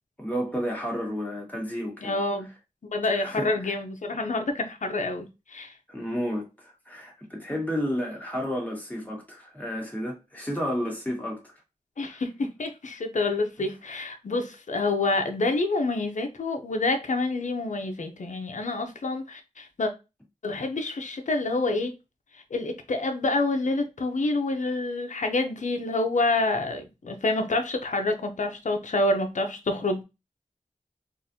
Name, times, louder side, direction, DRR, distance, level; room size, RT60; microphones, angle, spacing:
voice 1, 0.2-2.2 3.0-3.7 5.9-11.5 12.1-12.2, equal, 10° left, 1.6 m, -32 dB
voice 2, 2.0-2.5 2.9-5.7 12.0-19.9 20.4-21.9 22.5-30.0, left 2 dB, 70° left, 0.6 m, -27 dB
3.9 x 2.5 x 2.7 m
wide cardioid pair, 55°, 13 cm